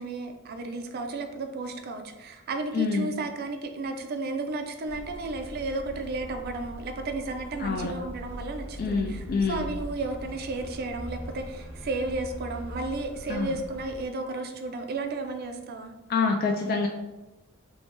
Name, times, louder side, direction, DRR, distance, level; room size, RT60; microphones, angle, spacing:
voice 1, 0.0-15.9, right 3 dB, 45° right, 5 dB, 0.4 m, -33 dB
voice 2, 2.7-3.1 7.6-7.9 8.8-9.7 13.3-13.5 16.1-16.9, left 4 dB, 45° left, 1 dB, 0.3 m, -26 dB
sound 1, 4.8-14.1, equal, 10° right, 0.8 m, -41 dB
3.0 x 2.6 x 3.5 m, 1.0 s
head